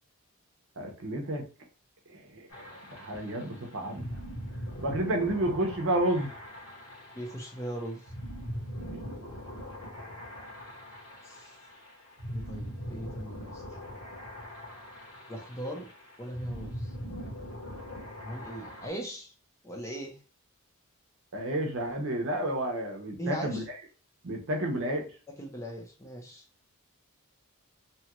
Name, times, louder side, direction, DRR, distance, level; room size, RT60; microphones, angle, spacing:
voice 1, 0.8-1.5 2.3-2.6 2.9-4.2 4.8-6.3 8.8-9.3 21.3-23.6 24.2-25.1, right 1 dB, 60° right, 2 dB, 0.8 m, -31 dB
sound 1, 2.5-18.9, equal, 75° left, 1.2 m, -42 dB
voice 2, 7.1-8.0 11.2-11.5 12.3-13.6 15.3-15.9 16.2-16.9 18.2-19.3 19.6-20.2 23.2-23.6 25.3-26.4, equal, 15° left, 0 dB, 0.6 m, -39 dB
2.9 x 2.4 x 2.9 m, 0.37 s
head